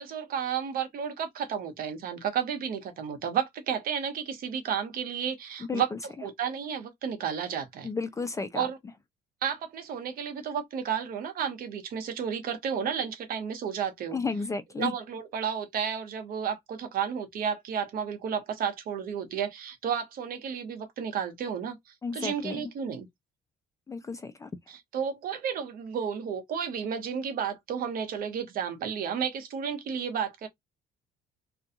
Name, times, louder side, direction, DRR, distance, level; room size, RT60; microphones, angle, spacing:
voice 1, 0.0-5.9 6.2-7.9 8.5-8.8 9.4-14.2 14.8-21.8 22.1-23.1 24.7-30.5, right 7 dB, 60° right, 0.9 m, -32 dB
voice 2, 5.6-6.0 7.8-8.7 14.1-14.9 22.0-22.7 23.9-24.5, left 4 dB, 20° left, 0.3 m, -33 dB
2.5 x 2.3 x 2.7 m
cardioid pair, 110°, 17 cm